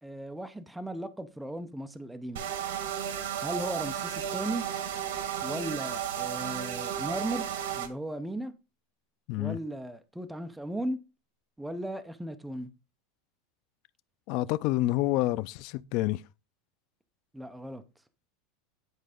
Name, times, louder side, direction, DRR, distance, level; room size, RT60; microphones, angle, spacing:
voice 1, 0.0-2.4 3.4-4.6 5.4-7.5 7.7-8.5 9.3-11.0 11.6-12.7 17.3-17.8, right 1 dB, 5° right, 0.6 m, -36 dB
sound 1, 2.4-7.9, right 9 dB, 85° right, 1.7 m, -33 dB
voice 2, 14.3-16.2, left 16 dB, 40° left, 0.4 m, -28 dB
9.8 x 4.5 x 5.0 m
supercardioid pair, 180°, 0 cm